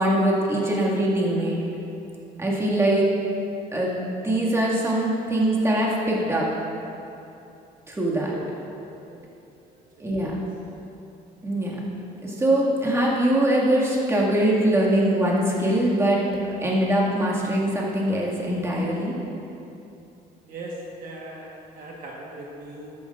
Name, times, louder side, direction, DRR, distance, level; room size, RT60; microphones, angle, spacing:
voice 1, 0.0-1.6 2.4-3.1 3.7-6.5 7.9-8.3 10.0-10.4 11.4-11.8 12.2-16.2 16.5-19.1, right 1 dB, 15° right, -5 dB, 2.0 m, -22 dB
voice 2, 20.4-22.9, right 1 dB, 55° right, -3 dB, 1.4 m, -39 dB
13.0 x 10.5 x 2.5 m, 2.8 s
cardioid pair, 110°, 17 cm